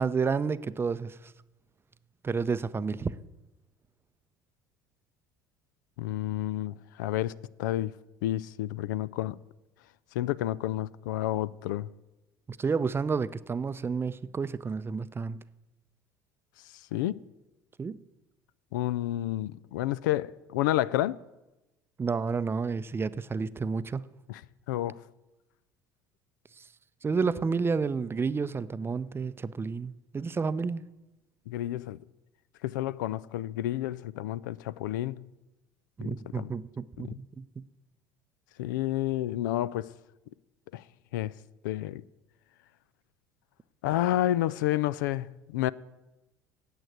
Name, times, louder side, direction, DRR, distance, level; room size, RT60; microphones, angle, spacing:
voice 1, 0.0-1.3 2.2-3.1 12.5-15.4 17.8-18.0 22.0-24.1 26.6-26.7 27.0-30.9 36.0-37.7, right 5 dB, 20° right, 0.5 m, -30 dB
voice 2, 6.0-7.3 7.6-7.9 8.2-9.4 10.1-11.9 16.9-17.2 18.7-21.2 24.3-24.4 24.7-25.0 31.5-32.0 32.6-35.3 36.0-36.5 37.1-37.2 38.6-39.9 40.7-40.8 41.1-41.3 41.6-42.0 43.8-45.7, left 14 dB, 75° left, 0.4 m, -30 dB
9.0 x 8.1 x 9.1 m
hypercardioid pair, 70°, 10 cm